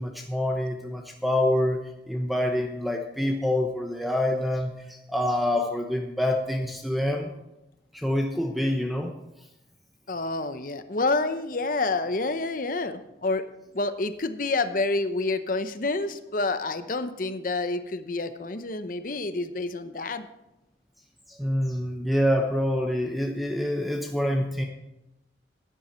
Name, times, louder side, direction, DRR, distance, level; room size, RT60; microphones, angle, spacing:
voice 1, 0.0-1.8 2.1-7.3 7.9-9.1 21.3-24.6, left 1 dB, ahead, 3 dB, 0.8 m, -26 dB
voice 2, 10.1-13.4 13.7-20.3, left 3 dB, 45° left, 10 dB, 0.8 m, -28 dB
12.5 x 10.0 x 4.4 m, 0.92 s
head